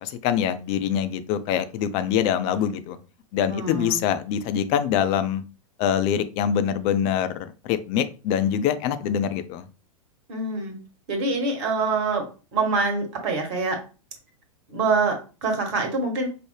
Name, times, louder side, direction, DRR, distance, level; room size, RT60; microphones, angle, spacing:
voice 1, 0.0-3.0 3.3-5.4 5.8-9.6, left 9 dB, 35° left, 11 dB, 0.4 m, -24 dB
voice 2, 3.5-4.0 10.3-13.8 14.7-16.3, right 3 dB, 40° right, 3 dB, 1.3 m, -25 dB
4.8 x 2.0 x 3.2 m, 0.34 s
figure-of-eight pair, 100°, 18 cm